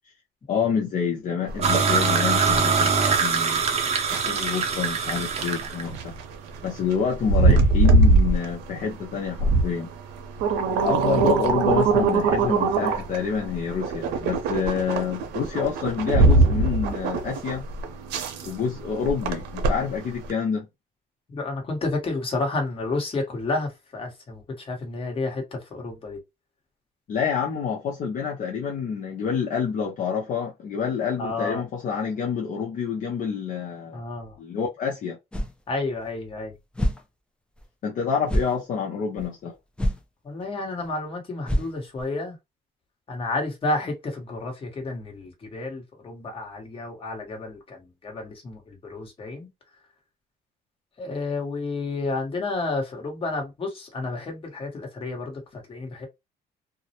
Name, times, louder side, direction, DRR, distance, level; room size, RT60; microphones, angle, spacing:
voice 1, 0.5-2.9 3.2-3.6 4.1-6.1 6.6-9.9 10.8-17.6 18.4-20.7 27.1-34.0 34.4-35.2 37.8-39.5, left 6 dB, 50° left, 0.6 m, -27 dB
sound 1, 1.5-20.3, right 3 dB, 85° right, 0.6 m, -23 dB
sound 2, 1.6-5.8, right 5 dB, 40° right, 0.6 m, -23 dB
voice 2, 21.3-26.2 31.2-31.6 33.9-34.4 35.7-36.5 40.2-42.4 43.1-49.5 51.0-56.1, left 3 dB, 30° left, 1.1 m, -31 dB
sound 3, 35.3-35.6 36.0-36.1 36.7-37.0 37.6-37.7 38.3-38.6 39.2-39.3 39.8-40.0 40.4-40.5 40.8-40.9 41.5-42.0, equal, 5° left, 0.4 m, -26 dB
2.3 x 2.0 x 2.8 m
cardioid pair, 110°, 17 cm